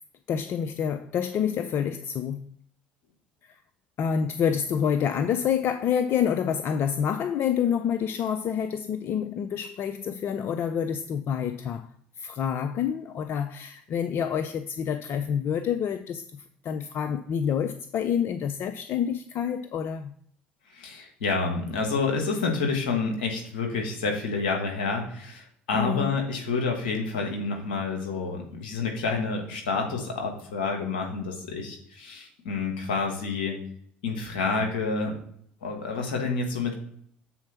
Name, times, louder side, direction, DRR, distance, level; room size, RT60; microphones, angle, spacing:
voice 1, 0.3-2.5 3.5-3.6 4.0-11.9 12.2-20.1 25.7-26.1, left 8 dB, 50° left, 0.5 m, -28 dB
voice 2, 20.7-33.6 34.0-35.2 35.6-36.7, left 4 dB, 75° left, 1.7 m, -29 dB
7.1 x 4.3 x 5.8 m
figure-of-eight pair, 55°, 5 cm